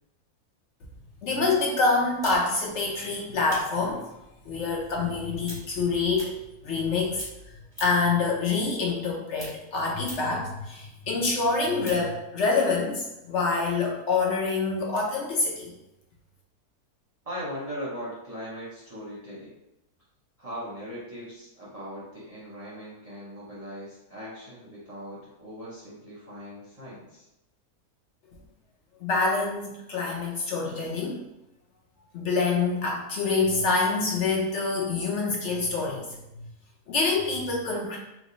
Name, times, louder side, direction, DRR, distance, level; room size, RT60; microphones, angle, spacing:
voice 1, 1.2-4.0 4.4-6.4 6.6-7.2 7.8-15.7 29.0-31.2 32.1-36.1 36.3-36.5 36.9-38.0, left 3 dB, 65° left, -1 dB, 0.7 m, -26 dB
sound 1, 2.2-6.9 7.1-8.2 8.5-12.1, equal, ahead, 1.1 m, -44 dB
voice 2, 17.2-19.6 20.4-27.3, equal, 30° right, -9 dB, 0.7 m, -39 dB
3.0 x 2.2 x 3.8 m, 0.91 s
omnidirectional pair, 1.6 m